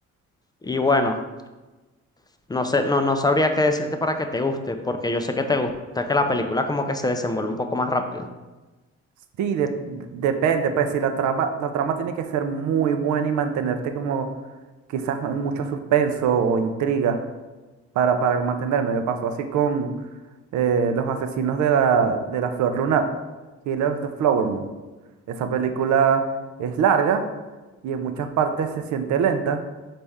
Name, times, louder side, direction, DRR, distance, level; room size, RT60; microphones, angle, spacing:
voice 1, 0.6-1.2 2.5-5.7 6.0-8.3, left 2 dB, 15° left, 6 dB, 0.3 m, -23 dB
voice 2, 9.4-14.3 14.9-17.2 18.0-19.9 20.5-23.0 23.7-24.7 25.4-26.2 26.6-27.2 27.8-29.6, right 7 dB, 70° right, 7 dB, 0.5 m, -23 dB
4.1 x 3.3 x 3.5 m, 1.2 s
cardioid pair, 90°, 30 cm